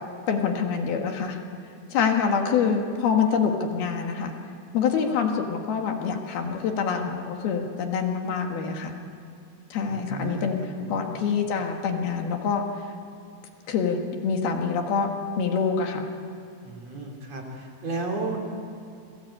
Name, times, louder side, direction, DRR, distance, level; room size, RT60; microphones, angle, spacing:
voice 1, 0.3-1.4 1.9-4.3 4.7-8.9 9.7-10.6 10.9-12.6 13.7-15.1 15.4-16.1, left 6 dB, 70° left, 3 dB, 3.5 m, -25 dB
voice 2, 9.9-11.1 16.6-18.4, right 3 dB, 40° right, 0 dB, 3.7 m, -33 dB
28.0 x 21.5 x 8.7 m, 2.5 s
omnidirectional pair, 4.9 m